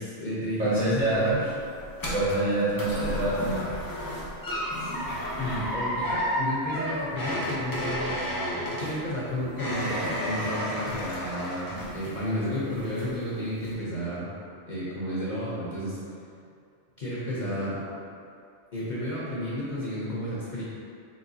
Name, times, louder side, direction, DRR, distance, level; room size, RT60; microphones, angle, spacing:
voice 1, 0.0-1.4 4.8-5.0 5.4-8.2 8.8-14.3 14.7-16.0 17.0-17.8 18.7-20.6, equal, 45° left, -9 dB, 0.8 m, -32 dB
voice 2, 0.6-1.4 2.1-3.7, right 2 dB, 45° right, -10 dB, 1.2 m, -26 dB
sound 1, 0.8-12.4 12.7-13.2 13.6-13.7, equal, 30° left, 0.4 m, -32 dB
4.2 x 3.2 x 2.6 m, 2.4 s
omnidirectional pair, 1.2 m